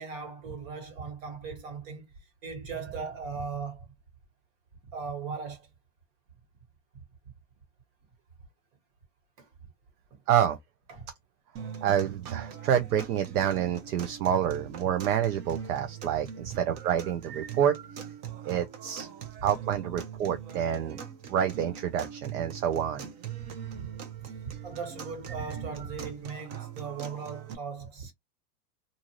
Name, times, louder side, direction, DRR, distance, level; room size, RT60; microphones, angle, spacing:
voice 1, 0.0-2.1 2.4-3.9 4.9-5.7 6.9-7.0 9.4-9.5 10.1-10.2 10.9-11.1 11.6-11.7 16.5-16.6 23.7-23.9 24.2-28.1, right 5 dB, 60° right, 1.7 m, -38 dB
voice 2, 10.3-10.6 11.8-17.8 18.4-19.1 19.4-21.0 21.3-23.1, right 9 dB, 75° right, 0.7 m, -28 dB
sound 1, 11.6-27.6, right 8 dB, 35° right, 0.7 m, -41 dB
2.6 x 2.4 x 3.0 m
hypercardioid pair, 125°, 45 cm